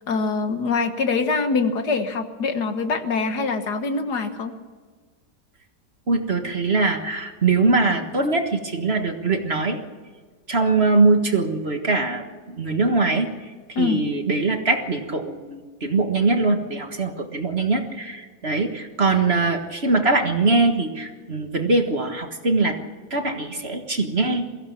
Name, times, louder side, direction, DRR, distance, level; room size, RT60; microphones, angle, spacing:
voice 1, 0.1-4.5 13.8-14.0, left 4 dB, 65° left, 8 dB, 1.8 m, -24 dB
voice 2, 6.1-9.8 10.5-22.8 23.1-24.5, right 3 dB, 35° right, 5 dB, 1.7 m, -22 dB
22.5 x 16.0 x 7.2 m, 1.5 s
omnidirectional pair, 2.0 m